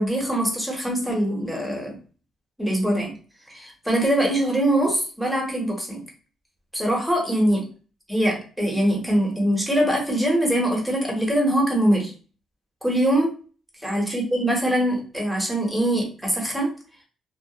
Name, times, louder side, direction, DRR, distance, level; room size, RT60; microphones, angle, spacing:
voice 1, 0.0-2.0 2.6-3.1 3.5-6.0 6.7-7.6 8.1-12.1 12.8-13.3 13.8-16.7, right 1 dB, 5° right, -1 dB, 1.0 m, -23 dB
2.3 x 2.0 x 2.9 m, 0.38 s
cardioid pair, 90°, 0 cm